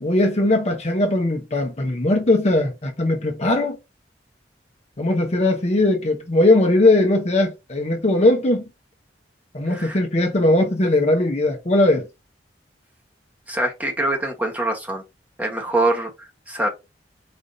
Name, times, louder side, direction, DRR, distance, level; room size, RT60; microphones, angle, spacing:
voice 1, 0.0-3.8 5.0-8.6 9.5-12.0, left 2 dB, 35° left, 0.9 m, -19 dB
voice 2, 9.7-10.0 13.5-15.0 15.4-16.7, right 2 dB, 10° right, 1.2 m, -24 dB
5.1 x 3.4 x 2.7 m
head